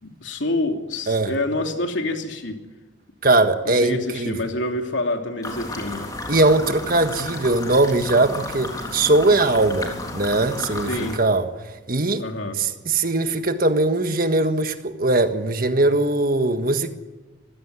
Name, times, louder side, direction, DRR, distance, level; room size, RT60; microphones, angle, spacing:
voice 1, 0.0-2.6 3.6-6.1 10.9-11.2 12.2-12.6, left 2 dB, 75° left, 2.9 m, -27 dB
voice 2, 3.2-4.4 6.3-11.5 11.9-12.2 12.6-16.9, right 2 dB, 45° right, 1.6 m, -20 dB
sound 1, 5.4-11.2, left 2 dB, 20° left, 3.4 m, -33 dB
25.5 x 16.0 x 9.7 m
head